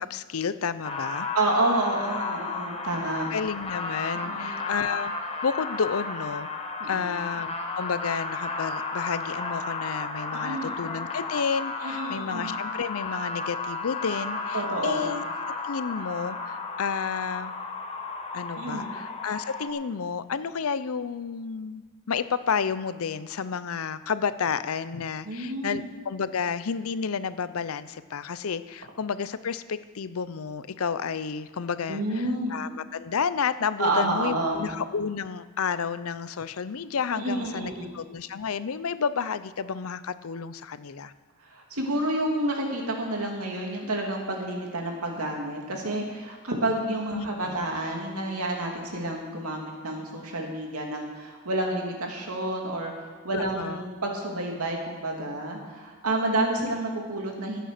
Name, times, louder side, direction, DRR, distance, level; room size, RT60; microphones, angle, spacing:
voice 1, 0.0-1.3 3.3-5.1 5.4-15.2 15.6-17.5 18.3-41.1 47.1-47.6 53.3-53.9, left 6 dB, 70° left, 14 dB, 0.6 m, -31 dB
sound 1, 0.8-19.7, left 3 dB, 25° left, 1.1 m, -33 dB
voice 2, 1.3-3.3 4.2-4.5 6.8-7.1 10.3-10.8 11.8-12.6 14.5-15.1 18.6-18.9 25.2-25.9 31.9-32.6 33.8-34.7 37.1-37.9 41.4-57.7, right 1 dB, 85° right, 1 dB, 2.6 m, -29 dB
13.5 x 9.1 x 6.7 m, 1.5 s
head